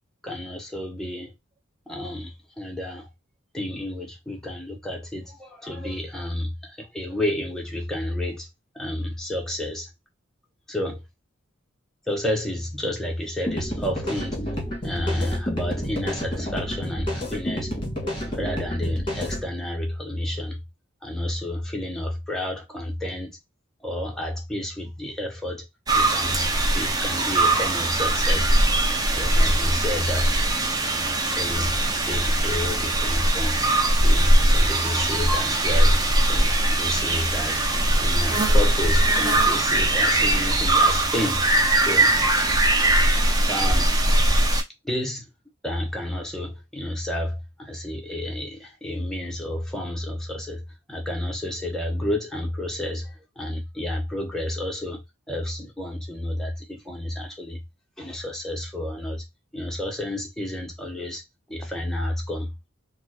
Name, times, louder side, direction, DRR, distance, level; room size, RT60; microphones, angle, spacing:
voice 1, 0.2-1.3 1.9-3.1 3.5-8.5 8.7-9.9 10.7-11.0 12.1-14.5 14.8-17.7 18.3-20.6 21.0-23.3 23.8-25.7 25.9-26.4 26.7-28.5 29.2-30.3 30.9-31.7 32.1-33.6 34.0-37.6 38.0-41.5 41.8-42.2 43.5-43.9 44.8-45.3 45.6-57.6 58.0-59.2 59.5-61.2 61.5-62.5, left 1 dB, ahead, 0.8 m, -30 dB
sound 1, 13.5-19.4, equal, 25° left, 1.7 m, -30 dB
sound 2, 25.9-44.6, right 1 dB, 20° right, 0.4 m, -21 dB
4.2 x 2.1 x 2.8 m
head